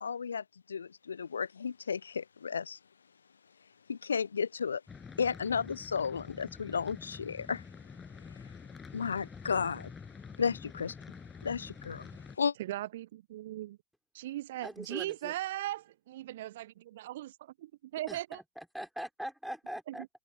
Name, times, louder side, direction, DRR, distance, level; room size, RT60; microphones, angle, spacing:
voice 1, 0.0-2.8 3.9-4.8 5.2-7.6 8.9-9.9 10.4-10.9 11.4-12.1 12.4-12.5, left 6 dB, 70° left, 0.3 m, -33 dB
sound 1, 4.9-12.4, left 5 dB, 15° left, 7.2 m, -48 dB
voice 2, 12.6-13.8 14.1-18.4 19.9-20.1, right 15 dB, 55° right, 1.1 m, -39 dB
voice 3, 14.6-15.3 18.1-20.1, equal, ahead, 5.1 m, -42 dB
figure-of-eight pair, 90°, 0 cm